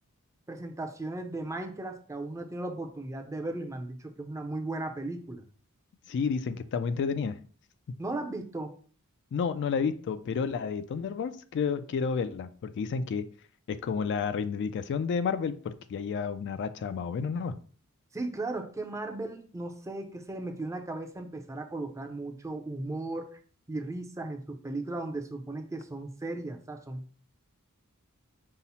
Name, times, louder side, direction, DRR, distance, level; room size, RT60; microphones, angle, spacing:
voice 1, 0.5-5.4 8.0-8.8 18.1-23.3 23.7-27.0, right 2 dB, 15° right, 5 dB, 0.5 m, -36 dB
voice 2, 6.1-7.3 9.3-13.3 13.7-17.5, left 6 dB, 55° left, 11 dB, 0.3 m, -31 dB
5.5 x 2.0 x 4.1 m, 0.43 s
head